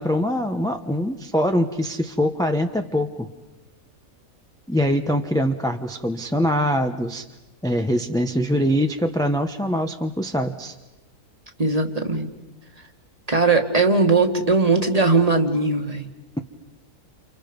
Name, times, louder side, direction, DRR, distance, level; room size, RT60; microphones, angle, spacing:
voice 1, 0.0-3.3 4.7-7.3 7.6-10.7, equal, 5° left, 5 dB, 0.9 m, -23 dB
voice 2, 11.6-12.3 13.3-16.1, right 3 dB, 25° right, 5 dB, 1.9 m, -19 dB
29.5 x 29.5 x 5.4 m, 1.0 s
omnidirectional pair, 1.6 m